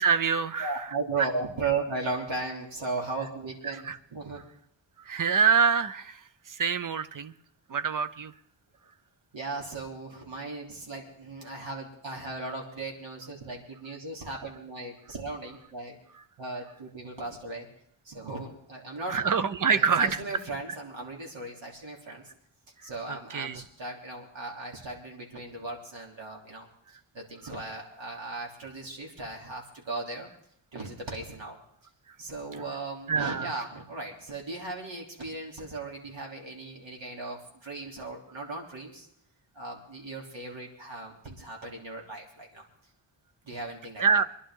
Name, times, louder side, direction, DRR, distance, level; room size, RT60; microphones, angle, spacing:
voice 1, 0.0-0.8 3.7-4.0 5.1-6.2 6.5-7.3 7.7-8.3 19.1-20.2 23.1-23.6 33.1-33.5 44.0-44.2, right 6 dB, 40° right, 12 dB, 0.7 m, -25 dB
voice 2, 0.6-4.4 7.7-7.8 9.3-15.9 16.4-17.7 18.0-19.2 19.7-22.2 22.8-26.7 27.1-30.3 30.7-31.6 32.2-39.1 39.5-42.6 43.4-44.1, right 3 dB, 65° right, -1 dB, 3.4 m, -37 dB
24.5 x 11.0 x 3.8 m, 0.72 s
wide cardioid pair, 175°, 48 cm